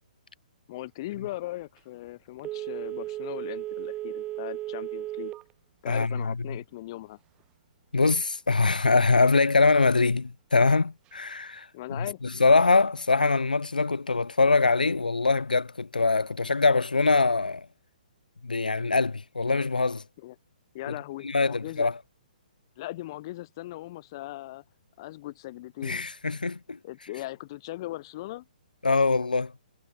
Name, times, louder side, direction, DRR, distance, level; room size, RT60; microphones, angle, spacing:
voice 1, 0.7-5.3 5.8-7.2 11.7-12.2 20.2-20.3 20.7-21.9 22.8-24.6 25.0-26.0 26.8-28.4, left 17 dB, 35° left, 0.5 m, -39 dB
Telephone, 2.4-5.5 5.9-6.0, right 15 dB, 20° right, 0.8 m, -35 dB
voice 2, 5.9-6.6 7.9-17.7 18.4-20.0 20.9-21.0 21.2-22.0 25.8-26.8 28.8-29.5, left 3 dB, 75° left, 0.6 m, -23 dB
figure-of-eight pair, 125°, 5 cm